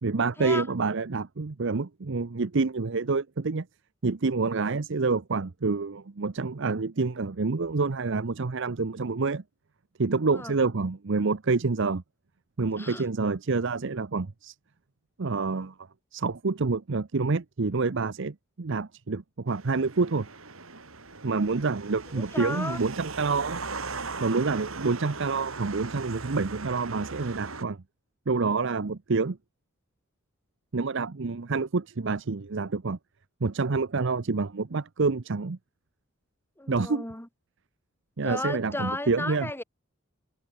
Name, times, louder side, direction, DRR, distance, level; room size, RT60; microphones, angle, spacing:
voice 1, 0.0-3.7 4.0-9.4 10.0-12.0 12.6-14.5 15.2-15.7 16.1-20.3 21.2-23.6 24.2-27.8 28.3-29.4 30.7-33.0 33.4-35.6 36.7-37.0 38.2-39.5, right 4 dB, 60° right, 0.7 m, -27 dB
sound 1, 19.5-27.6, right 4 dB, 80° right, 3.6 m, -39 dB
voice 2, 22.1-22.8 36.6-37.3 38.2-39.6, left 2 dB, 10° left, 2.2 m, -34 dB
head